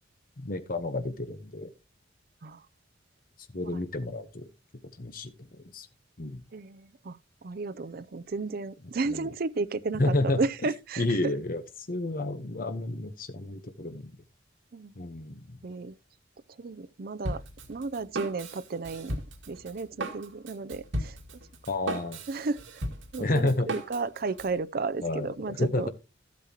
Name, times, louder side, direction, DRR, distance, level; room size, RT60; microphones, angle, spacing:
voice 1, 0.4-1.7 3.5-4.5 5.0-5.9 6.2-6.4 9.1-9.2 10.0-10.4 11.0-11.6 11.9-14.1 15.0-15.6 21.7-22.2 23.2-23.7 25.0-25.9, left 2 dB, 50° left, 0.9 m, -30 dB
voice 2, 6.5-11.3 14.7-14.9 15.6-16.0 16.5-17.4 17.7-19.2 19.5-21.2 22.3-22.8 23.1-25.9, right 3 dB, 50° right, 0.5 m, -33 dB
Drum kit, 17.2-24.5, right 1 dB, 80° right, 2.1 m, -37 dB
13.0 x 8.5 x 2.9 m
head